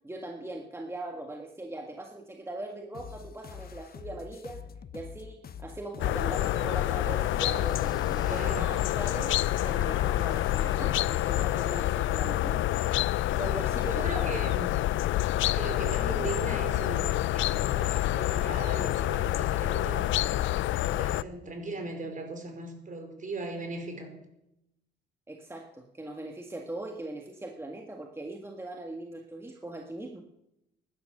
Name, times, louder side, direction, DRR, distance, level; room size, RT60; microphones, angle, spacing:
voice 1, 0.0-4.7 4.9-9.4 9.6-13.0 13.3-14.4 25.3-30.2, right 2 dB, 10° right, 2 dB, 1.7 m, -40 dB
sound 1, 2.9-10.9, left 7 dB, 50° left, 1.0 m, -45 dB
sound 2, 6.0-21.2, left 15 dB, 75° left, 0.5 m, -27 dB
sound 3, 6.4-13.0 13.5-13.6, left 2 dB, 20° left, 1.6 m, -48 dB
voice 2, 8.2-8.8 13.5-14.8 15.5-24.1, right 3 dB, 40° right, 5 dB, 4.9 m, -38 dB
16.0 x 11.5 x 6.7 m, 0.86 s
cardioid pair, 90°, 20 cm